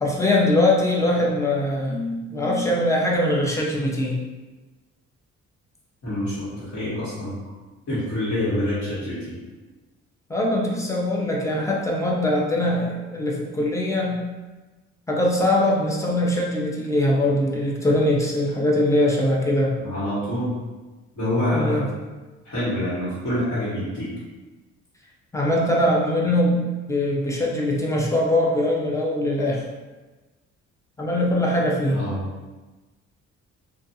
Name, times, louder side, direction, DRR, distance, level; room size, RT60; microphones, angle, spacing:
voice 1, 0.0-4.1 10.3-14.2 15.1-19.7 21.5-21.9 25.3-29.6 31.0-32.0, left 1 dB, 10° left, -2 dB, 0.5 m, -22 dB
voice 2, 6.0-7.4 7.9-9.4 19.8-20.5 21.2-21.9 22.4-24.2 31.9-32.2, left 1 dB, 60° left, -12 dB, 1.2 m, -26 dB
2.4 x 2.3 x 2.7 m, 1.2 s
cardioid pair, 90°, 30 cm